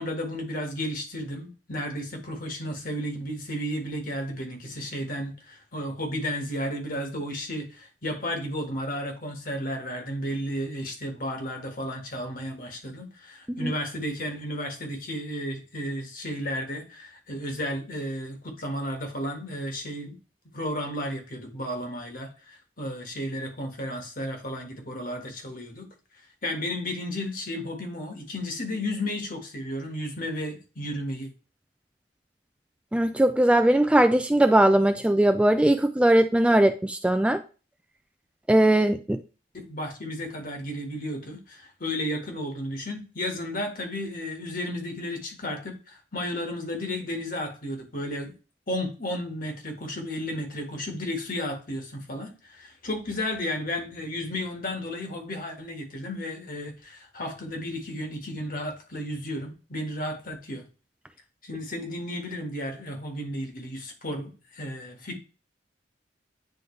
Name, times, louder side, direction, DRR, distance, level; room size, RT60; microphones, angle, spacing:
voice 1, 0.0-20.1 20.5-25.9 26.4-31.3 39.5-48.3 48.7-60.6 61.4-65.2, left 1 dB, 50° left, 1.8 m, -33 dB
voice 2, 32.9-37.4 38.5-39.2, right 1 dB, 5° right, 0.3 m, -20 dB
9.3 x 3.9 x 3.2 m
head